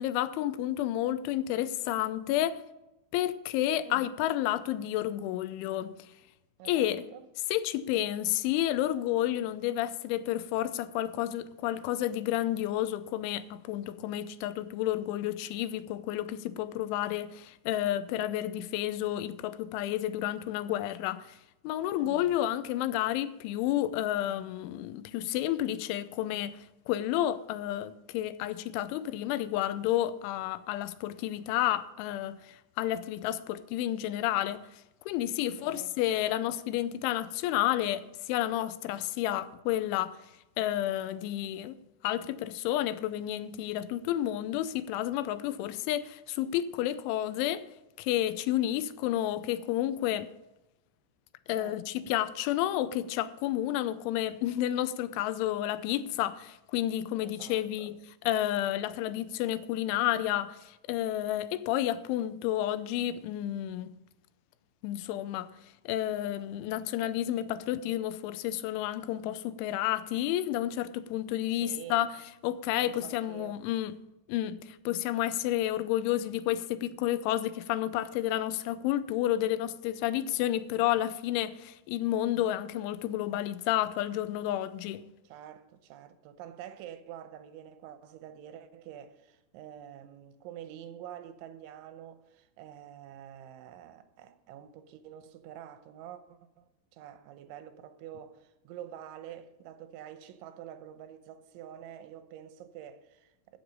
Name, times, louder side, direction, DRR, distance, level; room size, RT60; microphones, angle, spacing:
voice 1, 0.0-2.6 3.1-6.0 6.7-7.1 7.5-21.4 21.6-34.7 35.1-40.2 40.6-41.8 42.0-47.7 48.0-50.3 51.5-63.9 64.8-65.5 65.9-72.1 72.4-74.0 74.3-85.0, left 13 dB, 90° left, 3.1 m, -31 dB
voice 2, 6.6-7.3 22.0-22.3 35.6-35.9 51.5-52.1 57.2-57.9 71.6-72.1 72.8-73.6 85.2-103.6, right 10 dB, 85° right, 3.2 m, -47 dB
14.5 x 7.1 x 5.2 m
omnidirectional pair, 5.3 m